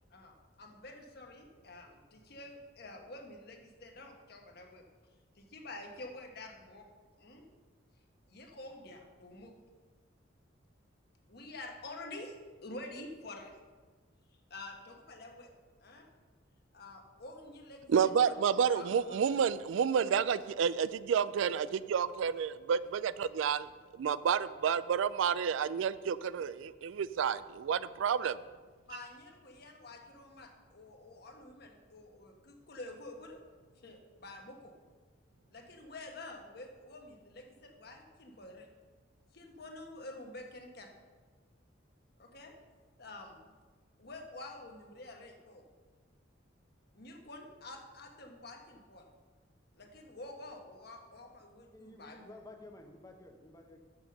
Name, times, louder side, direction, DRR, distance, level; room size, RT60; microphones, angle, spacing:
voice 1, 0.1-4.8 5.3-6.9 7.2-7.5 8.3-9.5 11.3-12.3 12.6-13.6 14.5-15.5 15.8-16.1 16.7-18.4 18.6-19.3 28.9-33.4 33.7-34.7 35.5-38.7 39.3-40.9 42.2-42.5 43.0-43.5 44.0-45.6 46.9-49.0 49.8-52.3, left 2 dB, 55° left, 2 dB, 1.2 m, -48 dB
voice 2, 17.9-23.7 24.0-28.4, right 7 dB, 75° right, 16 dB, 0.3 m, -30 dB
voice 3, 51.7-53.8, left 2 dB, 15° left, 3 dB, 0.8 m, -52 dB
7.1 x 6.1 x 6.5 m, 1.4 s
head